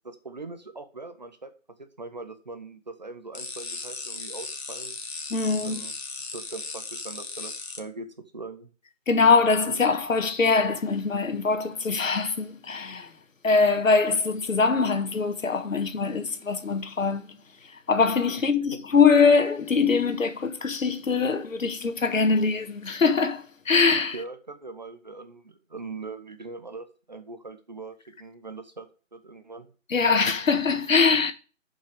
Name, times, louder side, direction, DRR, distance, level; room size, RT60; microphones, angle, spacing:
voice 1, 0.0-1.5 1.8-5.0 5.6-5.9 6.2-8.7 18.7-18.8 24.1-29.7, right 3 dB, 35° right, 0.9 m, -41 dB
sound 1, 3.3-7.8, left 3 dB, 55° left, 1.8 m, -37 dB
voice 2, 5.3-5.8 9.1-13.1 13.4-17.4 17.6-24.2 29.9-31.3, left 4 dB, 85° left, 1.6 m, -23 dB
6.9 x 5.5 x 6.5 m
hypercardioid pair, 175°, 38 cm